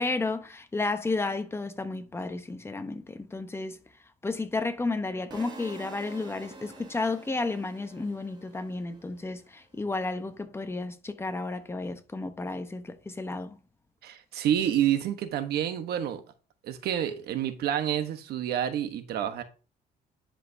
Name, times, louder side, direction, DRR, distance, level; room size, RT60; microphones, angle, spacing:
voice 1, 0.0-3.8 4.2-13.6, left 3 dB, 15° left, 0.9 m, -32 dB
sound 1, 5.3-9.4, right 3 dB, 25° right, 1.6 m, -47 dB
voice 2, 14.0-16.2 16.6-19.4, right 10 dB, 70° right, 1.2 m, -28 dB
10.5 x 5.1 x 2.7 m
cardioid pair, 110°, 17 cm